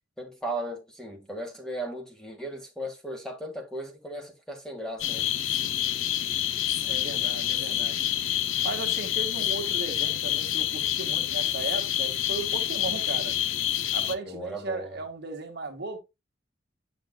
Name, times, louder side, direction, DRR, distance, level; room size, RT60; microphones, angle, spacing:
voice 1, 0.2-5.3 14.2-15.0, right 1 dB, 5° left, 1.7 m, -36 dB
sound 1, 5.0-14.2, left 11 dB, 85° left, 0.7 m, -27 dB
voice 2, 6.8-8.0 8.6-13.3 13.9-16.0, right 3 dB, 55° right, 1.8 m, -36 dB
8.8 x 6.4 x 2.2 m
head